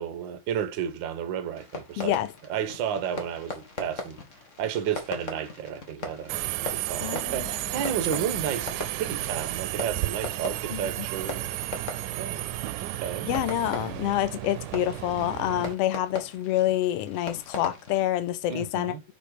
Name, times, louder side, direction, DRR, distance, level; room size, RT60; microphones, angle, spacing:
voice 1, 0.0-2.1 2.5-4.2 4.6-11.5 12.2-12.5 12.8-13.3 18.5-19.0, right 8 dB, 65° right, 1.2 m, -32 dB
Fireworks, 1.5-18.0, left 3 dB, 40° left, 1.1 m, -40 dB
voice 2, 2.0-2.3 7.0-7.5 10.7-10.8 13.2-18.9, left 13 dB, 80° left, 1.4 m, -27 dB
Subway metro underground, 6.3-15.7, right 17 dB, 85° right, 2.0 m, -33 dB
sound 1, 7.3-13.0, right 1 dB, 5° left, 1.5 m, -48 dB
7.1 x 5.0 x 4.7 m
omnidirectional pair, 3.5 m